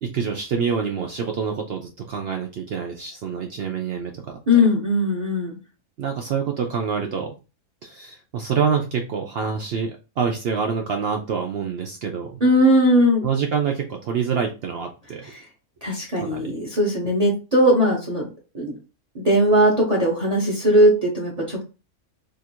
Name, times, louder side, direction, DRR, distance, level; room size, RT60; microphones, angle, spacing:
voice 1, 0.0-4.4 6.0-7.3 7.8-12.4 13.2-15.2 16.1-16.5, right 6 dB, 80° right, 3 dB, 0.5 m, -26 dB
voice 2, 4.5-5.6 12.4-13.2 15.2-15.4 15.8-18.3 18.5-18.7 19.1-21.6, equal, 35° right, -1 dB, 0.7 m, -19 dB
2.9 x 2.5 x 4.3 m, 0.32 s
omnidirectional pair, 1.6 m